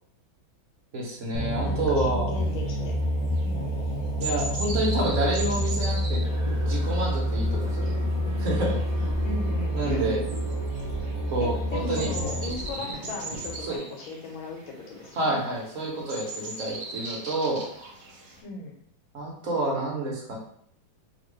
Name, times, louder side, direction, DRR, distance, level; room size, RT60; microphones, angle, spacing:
voice 1, 0.9-2.3 4.2-6.2 6.7-8.0 8.4-9.1 9.7-10.2 11.3-12.1 13.7-13.8 15.2-17.6 19.1-20.4, right 2 dB, 50° right, -3 dB, 1.2 m, -28 dB
sound 1, 1.3-12.6, equal, 65° left, 0.9 m, -28 dB
voice 2, 1.6-3.0 3.4-3.7 9.2-10.1 11.4-15.4 18.4-18.8, left 3 dB, 80° left, 0 dB, 1.6 m, -37 dB
sound 2, 2.3-18.4, right 2 dB, 70° right, 0.7 m, -41 dB
sound 3, 6.2-13.8, right 1 dB, 25° right, 0.6 m, -38 dB
3.1 x 3.1 x 3.1 m, 0.65 s
omnidirectional pair, 2.2 m